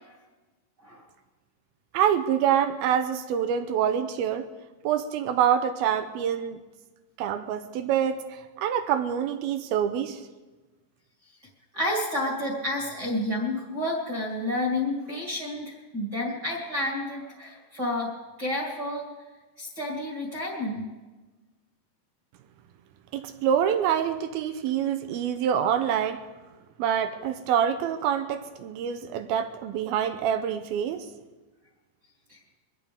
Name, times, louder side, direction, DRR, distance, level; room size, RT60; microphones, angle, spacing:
voice 1, 1.9-4.5 4.8-6.6 7.2-10.2 23.1-26.2 26.8-31.1, right 9 dB, 80° right, 9 dB, 2.3 m, -26 dB
voice 2, 11.7-18.1 18.4-19.1 19.6-20.9 32.3-32.4, left 1 dB, 30° right, -3 dB, 2.4 m, -30 dB
23.0 x 16.5 x 3.6 m, 1.2 s
omnidirectional pair, 5.1 m